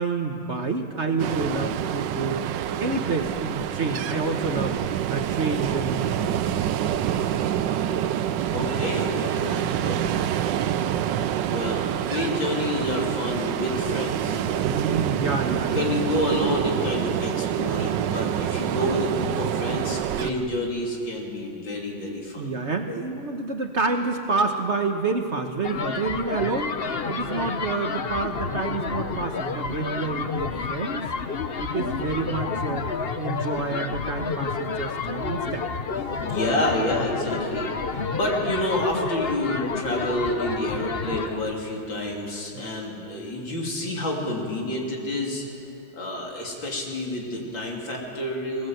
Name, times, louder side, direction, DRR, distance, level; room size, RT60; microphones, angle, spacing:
voice 1, 0.0-2.5 2.8-4.8 5.1-6.6 14.6-15.8 16.1-16.2 17.4-18.3 20.2-20.5 22.4-26.7 27.1-31.0 31.6-32.9 33.2-35.7 42.5-42.7, right 3 dB, 40° right, 5 dB, 1.2 m, -28 dB
Ocean, 1.2-20.3, right 10 dB, 75° right, 1.3 m, -27 dB
voice 2, 8.5-10.5 11.5-14.7 15.1-15.2 15.7-22.5 36.2-45.4 45.9-48.7, left 1 dB, 80° left, -1 dB, 4.0 m, -29 dB
sound 1, 25.6-41.4, left 5 dB, 45° left, 0.9 m, -30 dB
20.0 x 19.0 x 7.9 m, 2.7 s
omnidirectional pair, 2.0 m